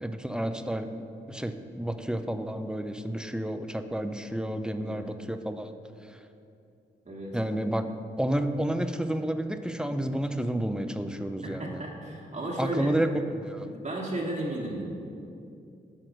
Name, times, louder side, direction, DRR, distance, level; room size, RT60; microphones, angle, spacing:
voice 1, 0.0-5.7 6.1-6.2 7.3-7.9 8.2-11.8 12.6-13.7, right 1 dB, 5° right, 8 dB, 0.5 m, -30 dB
voice 2, 7.0-7.4 11.4-12.9 13.6-14.8, right 1 dB, 35° right, -4 dB, 1.4 m, -34 dB
6.2 x 4.3 x 6.4 m, 2.6 s
supercardioid pair, 45°, 20 cm